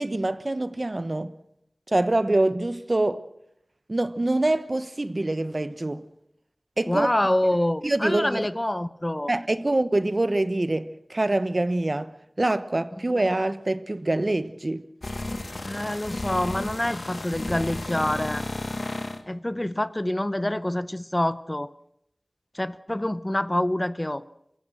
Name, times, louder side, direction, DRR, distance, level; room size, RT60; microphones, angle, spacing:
voice 1, 0.0-1.3 1.9-3.2 3.9-6.0 6.8-7.1 7.8-8.5 9.3-12.1 12.4-14.8, right 2 dB, 50° right, 1.1 m, -25 dB
voice 2, 6.9-9.3 15.6-18.4 19.3-21.7 22.5-24.2, left 1 dB, 30° left, 0.8 m, -26 dB
sound 1, 15.0-19.2, left 2 dB, 80° left, 1.9 m, -33 dB
27.0 x 15.5 x 7.6 m
wide cardioid pair, 50°, 0 cm